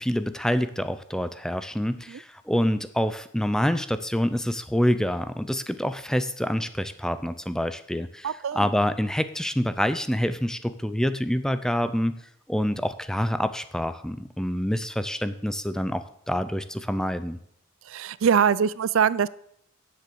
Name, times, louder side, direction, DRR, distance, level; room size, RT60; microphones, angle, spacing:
voice 1, 0.0-12.1 12.5-17.4, equal, 5° left, 12 dB, 0.5 m, -27 dB
voice 2, 8.2-8.7 17.9-19.3, right 7 dB, 85° right, 19 dB, 0.4 m, -23 dB
9.5 x 7.6 x 6.9 m, 0.70 s
head